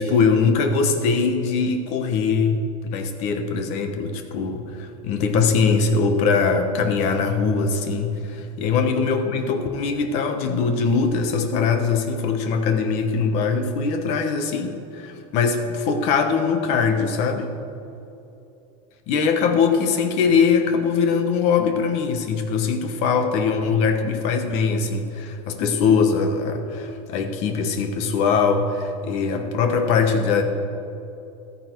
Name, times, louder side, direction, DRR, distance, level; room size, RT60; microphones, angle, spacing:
voice 1, 0.0-17.5 19.1-30.4, left 5 dB, 45° left, 6 dB, 1.3 m, -22 dB
14.0 x 14.0 x 4.6 m, 2.7 s
supercardioid pair, 170°, 16 cm